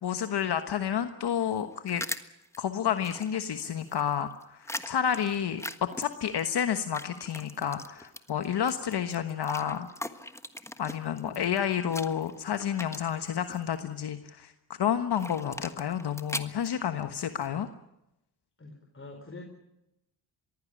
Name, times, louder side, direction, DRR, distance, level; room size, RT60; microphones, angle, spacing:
voice 1, 0.0-2.0 2.6-9.9 10.8-14.5 14.8-17.7, left 9 dB, 60° left, 9 dB, 1.3 m, -30 dB
sound 1, 1.4-2.6 3.0-6.6 6.9-13.7 15.1-17.5, left 1 dB, 5° left, 1.4 m, -40 dB
voice 2, 11.1-11.6 18.6-19.4, left 2 dB, 30° left, 3 dB, 4.5 m, -46 dB
22.0 x 16.0 x 9.9 m, 0.88 s
cardioid pair, 75°, 44 cm